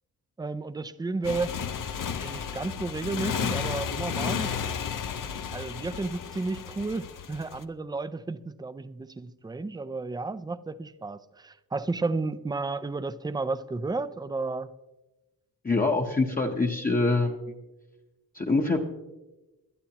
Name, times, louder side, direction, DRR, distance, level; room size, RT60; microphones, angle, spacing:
voice 1, 0.4-1.5 2.2-4.6 5.5-14.7, right 3 dB, 10° right, 0.4 m, -32 dB
Motorcycle, 1.2-7.6, left 7 dB, 60° left, 0.8 m, -33 dB
voice 2, 15.6-17.5 18.3-18.8, left 3 dB, 25° left, 0.8 m, -25 dB
21.0 x 12.0 x 2.9 m
wide cardioid pair, 155°, 36 cm